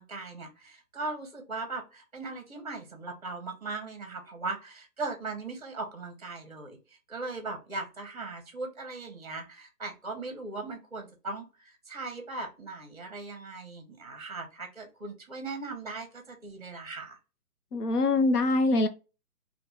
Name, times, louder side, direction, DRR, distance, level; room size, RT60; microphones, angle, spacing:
voice 1, 0.0-17.2, right 3 dB, 25° right, 0.7 m, -39 dB
voice 2, 17.7-18.9, left 2 dB, 75° left, 0.9 m, -24 dB
3.4 x 2.5 x 2.8 m
hypercardioid pair, 175°, 46 cm